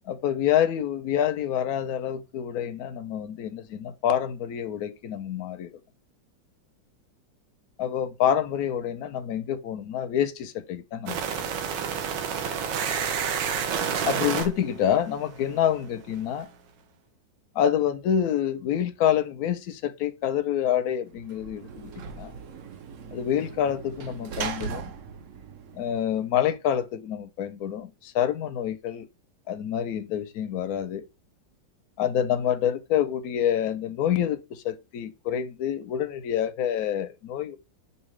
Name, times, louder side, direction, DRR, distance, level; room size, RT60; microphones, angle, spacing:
voice 1, 0.1-5.7 7.8-11.5 14.0-16.5 17.5-21.9 22.2-22.3 23.1-24.8 25.7-29.1 29.5-31.0 32.0-37.6, left 9 dB, 70° left, 0.9 m, -27 dB
sound 1, 11.1-15.9, right 7 dB, 80° right, 1.3 m, -30 dB
Sliding door / Slam, 21.1-26.5, right 6 dB, 65° right, 0.8 m, -39 dB
5.5 x 2.7 x 3.1 m
omnidirectional pair, 2.0 m